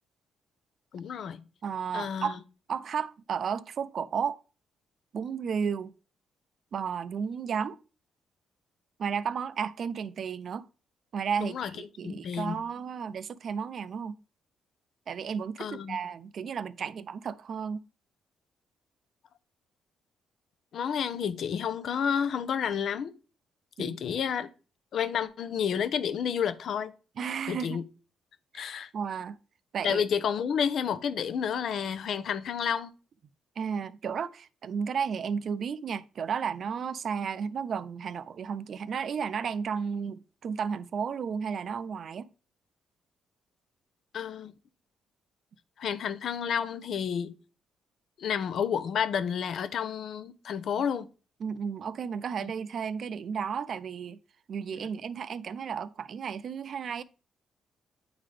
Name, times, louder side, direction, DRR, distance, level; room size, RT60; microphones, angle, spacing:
voice 1, 0.9-1.4 1.9-2.4 11.4-11.7 12.0-12.6 15.6-16.0 20.7-23.1 23.8-24.5 24.9-26.9 27.5-27.8 28.5-28.9 29.8-32.9 44.1-44.5 45.8-47.3 48.2-51.1 52.4-52.5, left 7 dB, 65° left, 0.7 m, -30 dB
voice 2, 1.6-2.4 2.7-4.4 5.1-5.9 6.7-7.8 9.0-10.7 11.1-14.2 15.1-17.8 23.8-24.0 27.2-27.8 28.5-29.4 29.7-30.0 33.6-42.3 50.8-50.9 51.4-54.2 54.5-57.0, right 6 dB, 55° right, 0.5 m, -33 dB
8.7 x 3.9 x 3.3 m
cardioid pair, 90°, 0 cm